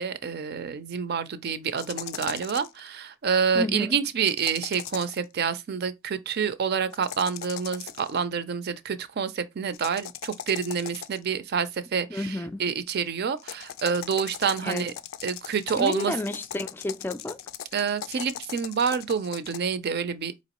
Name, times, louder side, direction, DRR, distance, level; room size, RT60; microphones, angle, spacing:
voice 1, 0.0-14.9 15.2-16.1 17.7-20.3, right 6 dB, 55° right, 0.5 m, -28 dB
sound 1, 1.8-2.8 4.2-5.2 6.9-8.2 9.7-11.3 13.4-19.6, left 10 dB, 85° left, 0.4 m, -39 dB
voice 2, 3.5-4.0 12.1-12.6 14.6-14.9 15.7-17.4, left 1 dB, 10° left, 0.3 m, -31 dB
4.4 x 3.0 x 2.9 m
head